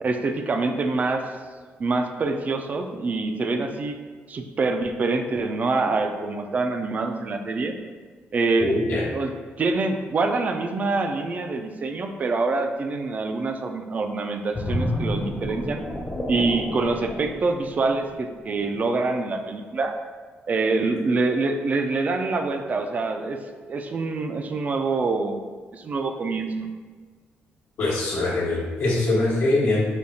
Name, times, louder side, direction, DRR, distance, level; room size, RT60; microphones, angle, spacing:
voice 1, 0.0-1.2 1.8-4.0 4.3-7.8 8.3-8.8 9.1-9.3 9.6-15.8 16.3-19.9 20.5-25.4 25.7-26.7, right 3 dB, 40° right, 6 dB, 0.3 m, -25 dB
voice 2, 8.6-9.1 27.8-29.9, left 2 dB, 80° left, -7 dB, 1.1 m, -23 dB
sound 1, 14.5-18.1 18.6-18.8, left 1 dB, 15° left, 0.6 m, -30 dB
5.0 x 2.3 x 2.7 m, 1.5 s
cardioid pair, 110°, 4 cm